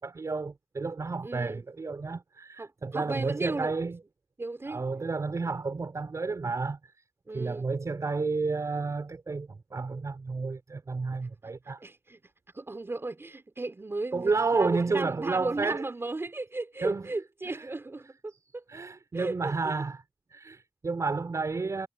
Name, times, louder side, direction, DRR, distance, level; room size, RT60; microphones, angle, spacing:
voice 1, 0.0-4.0 4.7-6.8 7.3-11.8 14.1-15.8 16.8-17.0 17.5-17.7 18.7-20.0 20.3-21.9, right 4 dB, 70° right, 5.1 m, -31 dB
voice 2, 1.2-1.6 2.6-3.9 4.4-4.8 7.3-7.7 11.4-11.5 11.8-12.2 12.5-18.6 19.1-19.5, right 2 dB, 45° right, 4.5 m, -35 dB
wide cardioid pair, 55°, 6 cm